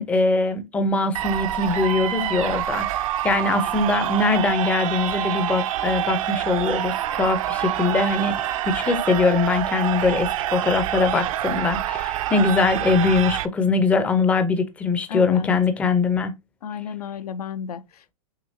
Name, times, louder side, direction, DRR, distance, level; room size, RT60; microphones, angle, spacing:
voice 1, 0.0-16.3, left 4 dB, 5° left, 0.4 m, -22 dB
sound 1, 1.1-13.5, right 13 dB, 60° right, 0.5 m, -26 dB
voice 2, 2.2-2.6 15.1-15.5 16.6-18.1, left 7 dB, 85° left, 0.6 m, -33 dB
6.5 x 2.8 x 2.7 m
hypercardioid pair, 145°, 19 cm